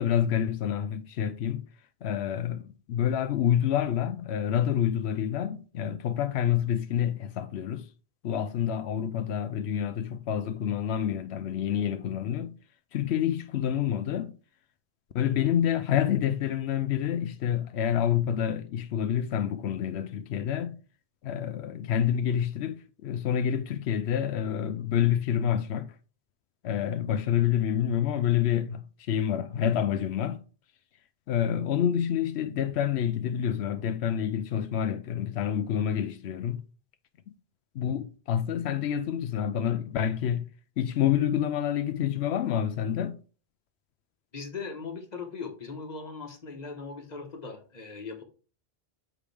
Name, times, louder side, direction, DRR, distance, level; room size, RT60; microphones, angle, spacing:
voice 1, 0.0-1.6 2.0-7.9 8.2-12.5 12.9-14.3 15.1-20.8 21.2-25.9 26.6-30.4 31.3-36.6 37.7-40.5 40.8-43.2, left 9 dB, 90° left, 0.9 m, -28 dB
voice 2, 44.3-48.2, left 4 dB, 40° left, 1.4 m, -39 dB
7.2 x 5.0 x 3.4 m
omnidirectional pair, 1.1 m